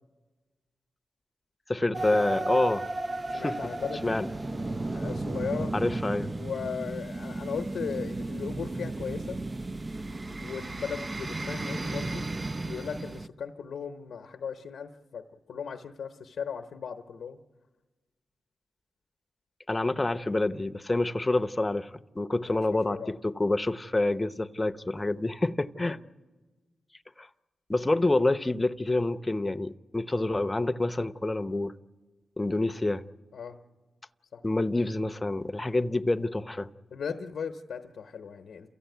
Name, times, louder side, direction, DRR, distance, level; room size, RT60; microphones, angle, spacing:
voice 1, 1.7-2.9 3.3-3.7 4.0-4.3 5.7-6.3 19.7-26.0 27.2-27.3 27.7-31.8 32.4-33.0 34.4-36.7, left 2 dB, 25° left, 0.8 m, -27 dB
sound 1, 1.9-13.3, right 2 dB, 35° right, 0.6 m, -34 dB
voice 2, 3.3-4.2 4.9-5.7 6.4-9.4 10.4-12.3 12.6-17.4 22.5-23.2 25.8-26.0 33.3-33.6 34.3-34.4 36.9-38.7, left 6 dB, 80° left, 0.9 m, -37 dB
28.5 x 14.5 x 9.3 m
cardioid pair, 50°, 0 cm